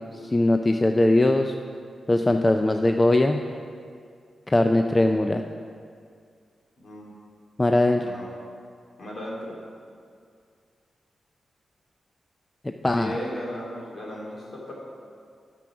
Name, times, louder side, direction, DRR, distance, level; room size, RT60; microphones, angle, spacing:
voice 1, 0.1-1.5 2.1-3.4 4.5-5.4 7.6-8.1 12.8-13.2, left 1 dB, 20° left, 5 dB, 0.4 m, -20 dB
voice 2, 6.8-7.1 8.0-8.3 9.0-9.5 12.9-14.7, equal, 55° left, -4 dB, 2.5 m, -35 dB
8.8 x 6.2 x 5.9 m, 2.2 s
wide cardioid pair, 100°, 0 cm